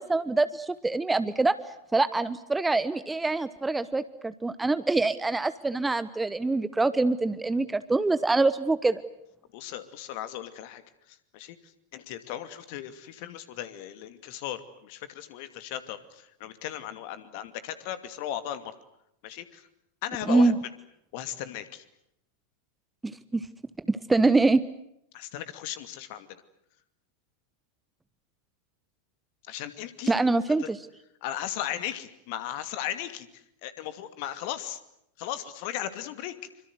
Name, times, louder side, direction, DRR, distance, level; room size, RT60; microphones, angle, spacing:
voice 1, 0.0-1.6 1.9-9.0 20.3-20.5 23.0-23.5 23.9-24.6 30.1-30.8, right 3 dB, 10° right, 14 dB, 1.0 m, -25 dB
voice 2, 9.5-10.8 11.1-11.6 11.9-18.7 19.2-19.6 20.0-20.5 21.1-21.8 25.1-26.4 29.5-30.1 31.2-33.3 33.6-34.8 35.2-36.3, left 12 dB, 45° left, 11 dB, 2.5 m, -36 dB
26.5 x 25.5 x 8.1 m, 0.78 s
figure-of-eight pair, 90°, 0 cm